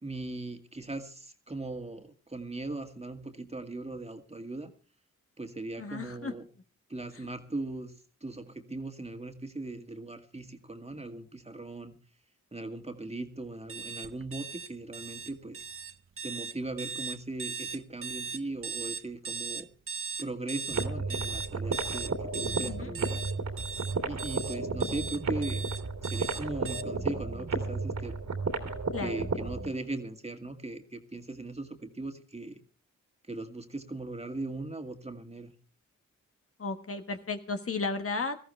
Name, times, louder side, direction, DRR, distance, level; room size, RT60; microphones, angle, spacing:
voice 1, 0.0-4.7 5.4-6.4 6.9-7.9 8.2-12.0 12.5-15.6 16.2-19.7 20.2-23.2 24.1-25.6 26.0-28.2 29.0-32.6 33.3-35.5, right 2 dB, 20° right, 5 dB, 2.0 m, -39 dB
voice 2, 5.8-6.3 7.2-7.3 22.6-22.9 28.9-29.3 36.6-38.4, left 4 dB, 45° left, 7 dB, 1.4 m, -34 dB
sound 1, 13.7-26.8, right 5 dB, 45° right, 0.6 m, -38 dB
sound 2, 20.7-29.7, right 3 dB, 65° right, 2.7 m, -33 dB
19.0 x 14.0 x 3.3 m, 0.37 s
cardioid pair, 60°, 31 cm